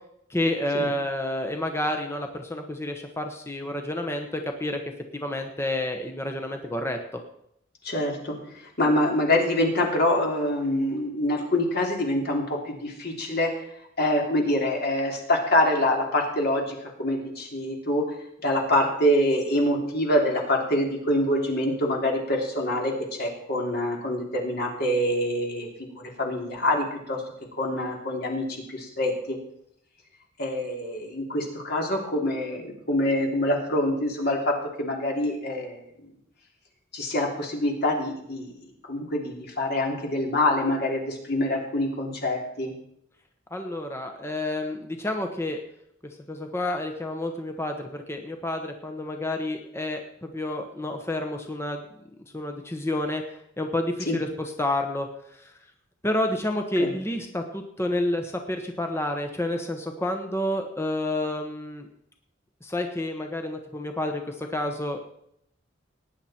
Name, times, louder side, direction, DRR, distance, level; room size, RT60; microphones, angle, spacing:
voice 1, 0.3-4.8 5.1-7.2 43.5-45.6 46.0-51.8 52.3-53.2 53.6-55.5 56.0-61.9 62.6-65.0, left 1 dB, 15° left, 4 dB, 1.1 m, -29 dB
voice 2, 7.8-8.4 8.8-13.5 14.0-18.0 18.4-22.9 23.2-25.7 25.9-27.2 27.6-28.4 28.7-29.4 30.4-34.5 34.8-35.8 36.9-38.5 38.9-42.7 54.1-54.2 56.8-56.9, left 1 dB, 55° left, 0 dB, 3.3 m, -25 dB
18.5 x 9.8 x 4.4 m, 0.74 s
head